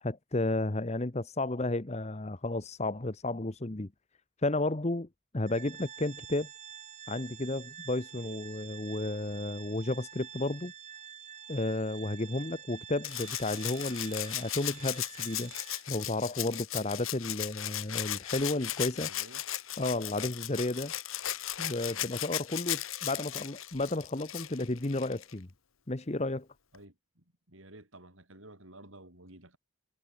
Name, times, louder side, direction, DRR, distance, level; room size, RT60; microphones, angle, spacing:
voice 1, 0.0-3.9 4.4-5.1 5.3-6.5 7.1-10.7 11.5-15.5 15.9-19.1 19.8-20.9 21.6-25.5 25.9-26.5, left 2 dB, 30° left, 1.0 m, -32 dB
Organ, 5.4-16.1, right 8 dB, 35° right, 2.1 m, -48 dB
Rattle (instrument), 13.0-25.3 26.7-26.8, left 13 dB, 80° left, 1.7 m, -37 dB
voice 2, 18.9-19.4 20.1-20.3 21.9-22.1 26.7-29.6, right 1 dB, 70° right, 5.9 m, -53 dB
head